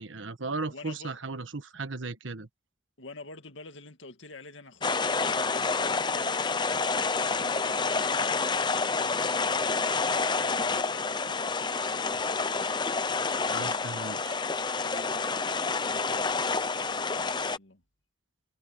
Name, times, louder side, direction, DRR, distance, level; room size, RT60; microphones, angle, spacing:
voice 1, 0.0-2.5 13.5-14.4, right 3 dB, 75° right, 1.4 m, -36 dB
voice 2, 0.7-1.2 3.0-9.8 10.3-12.6 14.8-16.3 16.6-17.8, left 2 dB, 75° left, 2.2 m, -48 dB
sound 1, 4.8-17.6, left 4 dB, 20° left, 0.7 m, -28 dB
head